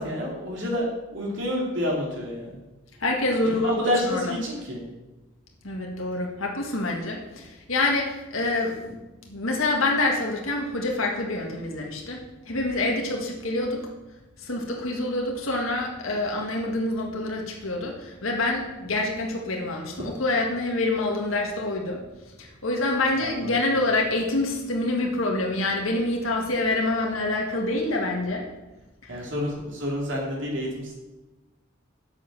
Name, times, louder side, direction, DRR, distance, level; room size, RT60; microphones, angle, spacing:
voice 1, 0.0-2.6 3.4-4.8 23.2-23.6 29.1-31.0, left 1 dB, 65° right, -2 dB, 2.7 m, -29 dB
voice 2, 3.0-4.2 5.6-8.9 9.3-13.8 14.4-22.0 22.4-28.5 29.0-29.2, left 2 dB, 85° left, 0 dB, 1.8 m, -26 dB
8.5 x 7.9 x 6.0 m, 1.1 s
head